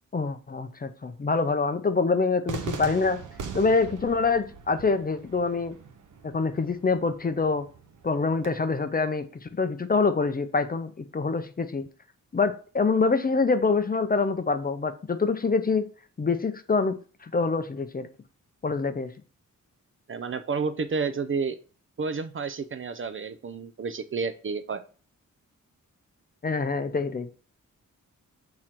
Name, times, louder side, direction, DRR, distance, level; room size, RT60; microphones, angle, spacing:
voice 1, 0.1-3.2 3.5-5.7 6.2-7.7 8.0-11.9 12.3-15.9 16.2-18.1 18.6-19.1 26.4-27.3, left 4 dB, 30° left, 9 dB, 0.5 m, -25 dB
Cheering / Fireworks, 2.5-8.5, right 5 dB, 75° right, 0.9 m, -40 dB
voice 2, 20.1-21.6 22.0-24.8, right 5 dB, 40° right, 10 dB, 0.5 m, -30 dB
6.0 x 3.8 x 4.4 m, 0.39 s
wide cardioid pair, 140°, 31 cm